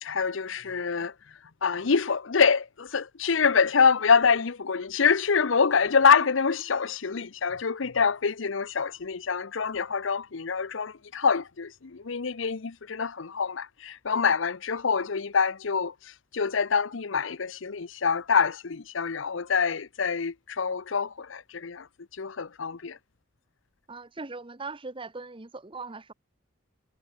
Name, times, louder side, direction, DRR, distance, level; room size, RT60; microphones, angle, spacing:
voice 1, 0.0-23.0, left 5 dB, 65° left, 0.7 m, -26 dB
voice 2, 23.9-26.1, right 3 dB, 25° right, 1.0 m, -39 dB
head